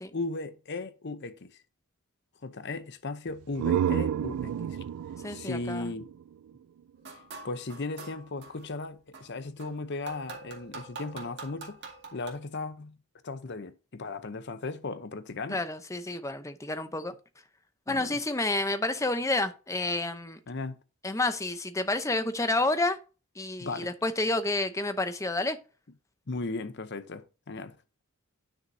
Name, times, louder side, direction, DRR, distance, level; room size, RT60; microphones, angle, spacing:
voice 1, 0.1-1.6 2.4-4.8 5.3-6.1 7.4-11.8 12.1-13.0 13.2-15.6 17.9-18.2 20.5-20.8 23.6-23.9 26.3-27.8, left 3 dB, 50° left, 0.8 m, -36 dB
sound 1, 3.3-7.0, right 9 dB, 85° right, 0.3 m, -31 dB
voice 2, 5.2-5.9 15.5-17.1 17.9-20.4 21.0-23.0 23.4-25.6, left 2 dB, 15° left, 0.7 m, -29 dB
sound 2, 7.0-8.7 9.1-12.3, right 4 dB, 50° right, 2.1 m, -45 dB
10.0 x 6.3 x 2.7 m
head